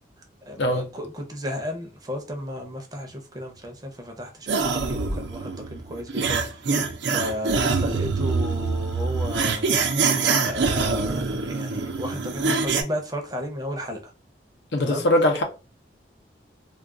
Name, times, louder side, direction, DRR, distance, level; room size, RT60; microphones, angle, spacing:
voice 1, 0.4-6.6 7.1-9.8 10.4-14.0 14.8-15.1, left 1 dB, 20° right, 0.6 m, -34 dB
sound 1, 4.5-12.8, right 4 dB, 80° right, 0.5 m, -24 dB
voice 2, 14.7-15.4, left 1 dB, 75° left, 0.6 m, -21 dB
2.4 x 2.3 x 3.6 m
head